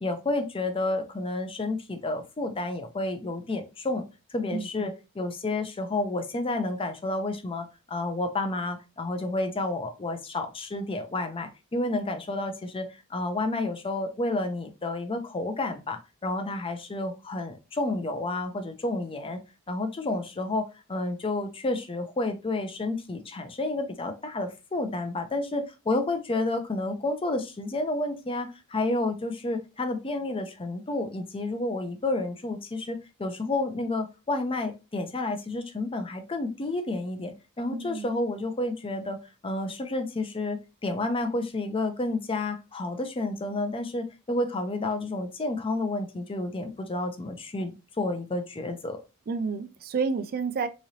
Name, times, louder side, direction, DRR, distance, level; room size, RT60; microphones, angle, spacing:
voice 1, 0.0-4.0 4.3-19.4 19.7-39.2 39.4-49.0, left 2 dB, 25° left, 0.5 m, -30 dB
voice 2, 4.5-4.9 37.7-38.1 49.3-50.7, right 5 dB, 45° right, 0.4 m, -30 dB
3.8 x 3.1 x 2.7 m
head